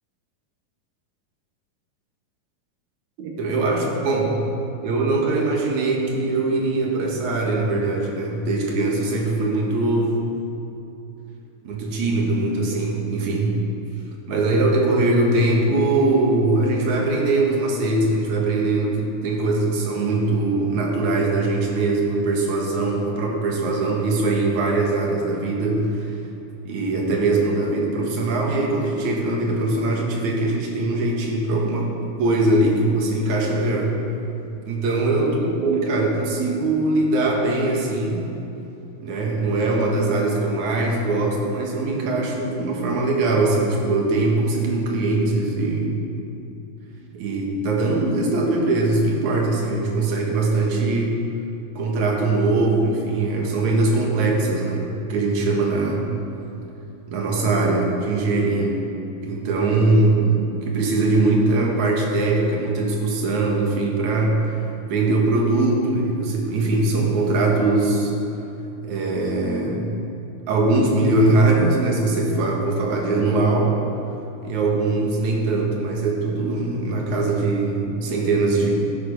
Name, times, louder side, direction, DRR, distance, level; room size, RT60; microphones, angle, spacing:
voice 1, 3.2-4.4 4.8-10.2 11.6-13.6 14.3-26.1 26.6-31.9 32.2-34.0 34.6-38.3 39.0-46.0 47.1-51.2 51.8-56.1 57.1-58.8 59.2-64.4 64.9-68.1 68.8-69.9 70.5-73.7 74.4-78.7, right 2 dB, 60° right, 0 dB, 2.8 m, -21 dB
12.5 x 11.5 x 5.4 m, 2.9 s
omnidirectional pair, 4.1 m